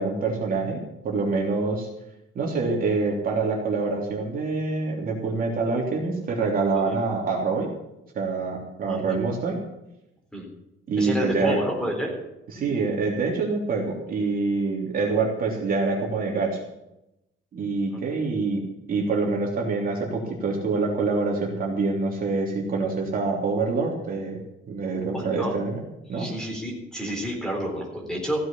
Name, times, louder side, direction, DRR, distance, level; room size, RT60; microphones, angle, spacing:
voice 1, 0.0-1.9 2.3-7.7 8.1-9.6 10.9-11.6 12.5-16.6 17.5-24.4 24.7-25.8 26.1-26.3, right 3 dB, 40° right, -1 dB, 3.3 m, -26 dB
voice 2, 8.9-9.2 10.3-10.5 11.0-12.1 17.9-18.0 25.1-25.5 26.1-28.4, equal, 5° left, 0 dB, 3.9 m, -30 dB
16.0 x 7.7 x 8.6 m, 0.86 s
cardioid pair, 175°, 21 cm